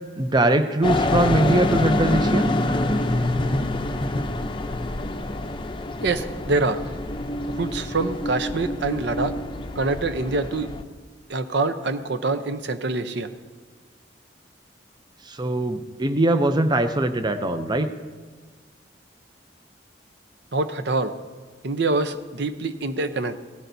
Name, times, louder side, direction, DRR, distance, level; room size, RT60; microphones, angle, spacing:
voice 1, 0.2-2.4 15.3-17.9, right 2 dB, 25° right, 9 dB, 0.6 m, -22 dB
sound 1, 0.8-10.8, left 1 dB, 30° left, 0.6 m, -26 dB
voice 2, 6.0-6.8 7.6-9.4 9.8-10.7 11.3-13.3 20.5-21.2 21.6-23.4, right 3 dB, 70° right, 10 dB, 0.7 m, -25 dB
17.0 x 15.5 x 2.7 m, 1.4 s
head